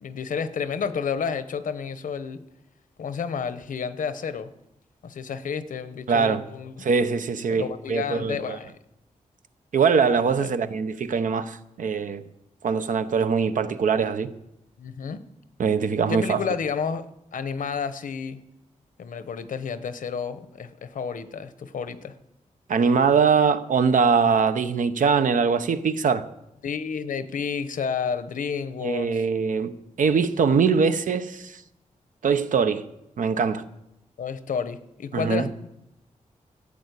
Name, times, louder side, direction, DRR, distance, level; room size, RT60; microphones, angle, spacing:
voice 1, 0.0-2.4 3.0-4.5 5.0-6.9 7.5-8.7 10.4-10.5 14.8-15.2 16.1-17.1 17.3-18.4 19.0-22.2 26.6-29.2 34.2-35.7, left 6 dB, 85° left, 1.0 m, -30 dB
voice 2, 6.1-6.4 6.8-8.6 9.7-12.2 12.6-14.3 15.6-16.4 22.7-26.3 28.8-29.7 30.0-31.6 32.2-32.8 33.2-33.6 35.1-35.5, right 5 dB, 75° right, 0.9 m, -22 dB
15.0 x 8.5 x 8.2 m
wide cardioid pair, 130°, 13 cm